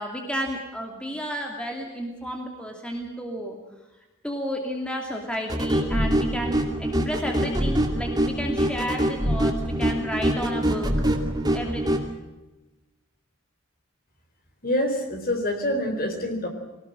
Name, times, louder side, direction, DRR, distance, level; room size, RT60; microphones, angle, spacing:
voice 1, 0.0-3.6 4.2-10.9 11.5-12.0, equal, 5° left, 1 dB, 2.6 m, -31 dB
sound 1, 5.5-12.1, right 1 dB, 20° right, 2.6 m, -24 dB
voice 2, 14.6-16.5, left 1 dB, 45° left, 5 dB, 4.2 m, -26 dB
23.0 x 18.5 x 7.7 m, 1.1 s
head